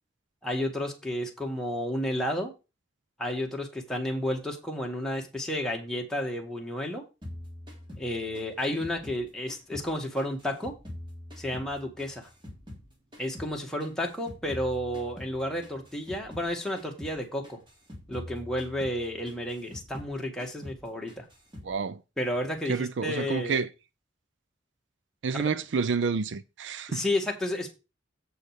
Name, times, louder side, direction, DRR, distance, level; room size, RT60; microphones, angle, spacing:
voice 1, 0.4-2.5 3.2-7.0 8.0-10.7 11.4-12.3 13.2-17.6 18.1-21.3 22.2-23.6 25.4-25.5 26.9-27.7, left 1 dB, 5° left, 2.0 m, -31 dB
sound 1, 7.2-9.9 10.2-12.9 13.1-16.5 16.8-17.2 17.4-20.1 20.4-20.8 21.1-21.7, left 1 dB, 25° right, 2.9 m, -44 dB
voice 2, 21.6-22.0 22.7-23.7 25.2-27.0, right 5 dB, 70° right, 0.5 m, -29 dB
8.0 x 6.4 x 5.1 m
head